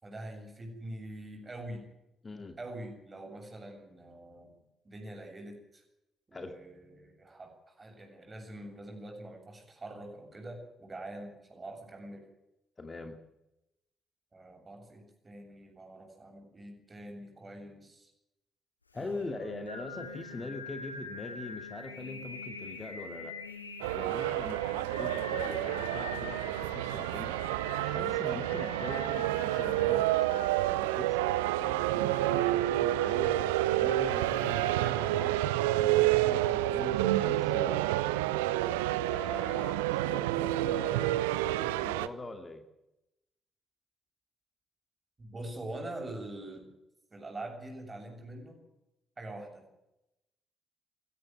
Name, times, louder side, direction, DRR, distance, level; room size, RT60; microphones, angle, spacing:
voice 1, 0.0-1.9 2.6-4.6 4.8-5.8 6.3-12.2 14.3-18.1 19.0-19.7 20.4-20.5 45.2-46.7 47.1-48.6 49.2-49.7, right 1 dB, 30° right, 3 dB, 7.8 m, -44 dB
voice 2, 2.2-2.6 6.3-6.5 12.8-13.2 18.9-23.3 23.9-30.1 30.7-33.4 33.8-37.8 39.1-42.6, left 3 dB, 30° left, 7 dB, 2.4 m, -43 dB
Singing, 18.9-34.9, left 3 dB, 85° left, 1.8 m, -45 dB
sound 1, 23.8-42.1, right 15 dB, 75° right, 0.7 m, -29 dB
18.5 x 15.5 x 9.3 m, 0.91 s
figure-of-eight pair, 40°, 0 cm